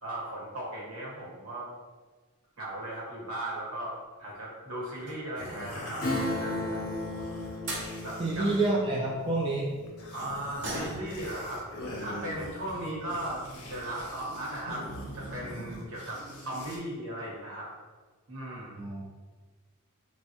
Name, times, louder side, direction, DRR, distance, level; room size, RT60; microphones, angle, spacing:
voice 1, 0.0-1.7 2.6-6.9 8.0-8.5 10.1-11.6 12.0-13.4 13.7-14.9 15.1-17.7 18.3-18.8, right 1 dB, 70° right, -5 dB, 1.0 m, -37 dB
sound 1, 4.0-4.4 4.9-5.8 7.3-7.4 7.7-7.9 10.6-11.3 11.6-11.7 12.2-12.3 13.1-13.2 13.5-13.6 14.0-14.3 14.6-14.7 15.0-15.1, right 1 dB, 50° right, 0.8 m, -39 dB
sound 2, 5.4-8.7 9.1-9.4 9.9-16.8, equal, 85° left, 0.6 m, -43 dB
Acoustic guitar / Strum, 6.0-12.2 12.6-12.7, left 1 dB, 40° left, 0.5 m, -36 dB
voice 2, 8.2-9.6 18.8-19.0, right 2 dB, 20° right, -5 dB, 0.3 m, -28 dB
3.3 x 2.1 x 2.8 m, 1.3 s
head